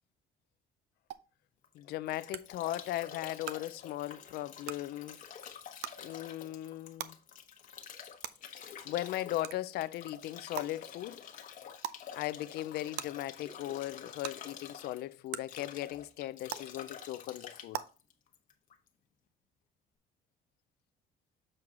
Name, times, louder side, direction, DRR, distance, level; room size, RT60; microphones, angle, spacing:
sound 1, 1.1-1.2 2.3-2.4 3.4-3.5 4.6-4.7 5.8-5.9 7.0-7.1 8.2-8.3 9.4-9.6 10.6-10.7 11.8-12.0 13.0-13.1 14.2-14.3 15.3-15.4 16.5-16.6 17.7-17.8, right 12 dB, 80° right, 0.6 m, -37 dB
Bathtub (filling or washing) / Drip / Trickle dribble, 1.6-18.9, left 8 dB, 50° left, 1.1 m, -48 dB
voice 1, 1.7-5.2 6.0-7.2 8.8-11.2 12.1-17.8, left 14 dB, 70° left, 0.5 m, -38 dB
7.6 x 4.5 x 3.8 m
cardioid pair, 110°, 17 cm